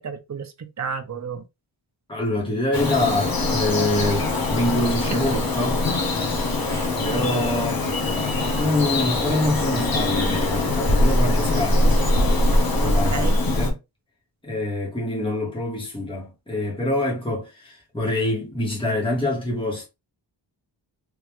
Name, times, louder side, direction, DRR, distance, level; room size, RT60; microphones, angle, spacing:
voice 1, 0.0-1.4 6.7-6.9 7.1-7.3 12.9-13.4, right 6 dB, 35° right, 0.7 m, -32 dB
voice 2, 2.1-5.8 7.0-7.8 8.4-11.9 12.8-13.8 14.4-19.9, left 1 dB, 10° left, 1.7 m, -25 dB
Bird vocalization bird call bird song, 2.7-13.7, left 2 dB, 45° left, 1.1 m, -22 dB
3.5 x 2.9 x 3.1 m
wide cardioid pair, 105°, 47 cm